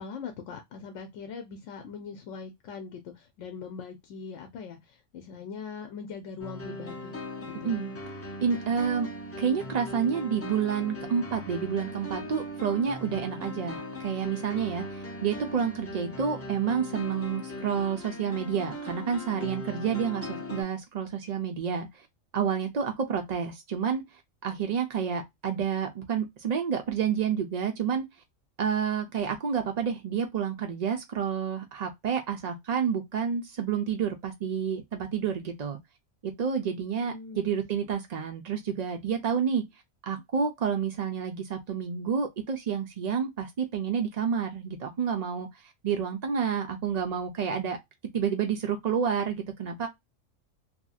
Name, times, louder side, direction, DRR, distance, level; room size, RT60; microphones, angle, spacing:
voice 1, 0.0-7.8 37.0-37.7, left 5 dB, 75° left, 0.9 m, -41 dB
sound 1, 6.4-20.6, left 1 dB, 25° left, 0.3 m, -39 dB
voice 2, 8.4-9.1 9.4-22.0 22.3-24.0 24.4-28.0 28.6-35.8 36.2-39.6 40.0-45.5 45.8-47.8 48.1-49.9, right 7 dB, 75° right, 0.3 m, -29 dB
2.8 x 2.6 x 2.3 m
omnidirectional pair, 1.3 m